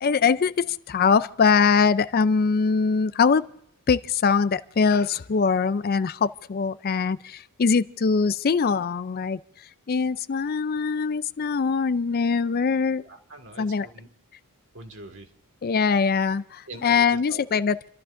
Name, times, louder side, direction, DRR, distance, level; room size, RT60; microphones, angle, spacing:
voice 1, 0.0-3.5 3.9-9.4 9.9-13.0 13.6-13.9 15.6-17.9, left 5 dB, 45° left, 0.4 m, -22 dB
voice 2, 13.0-14.1 14.7-15.3 16.7-17.6, right 2 dB, 60° right, 1.8 m, -43 dB
29.5 x 13.0 x 2.6 m
head